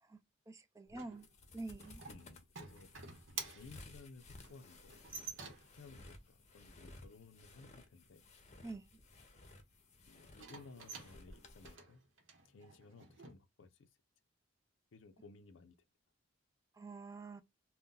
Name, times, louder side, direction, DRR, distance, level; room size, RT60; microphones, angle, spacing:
voice 1, 0.5-1.3 1.5-2.0 8.6-8.9 16.7-17.4, right 3 dB, 15° right, 0.3 m, -47 dB
sound 1, 0.9-11.7, left 2 dB, 35° left, 0.7 m, -58 dB
sound 2, 0.9-5.9 10.3-13.3, right 5 dB, 85° right, 0.8 m, -50 dB
voice 2, 2.1-2.9 3.5-4.9 5.5-8.2 10.1-12.0 12.5-13.9 14.9-15.8, left 3 dB, 80° left, 0.5 m, -58 dB
2.6 x 2.1 x 3.6 m
head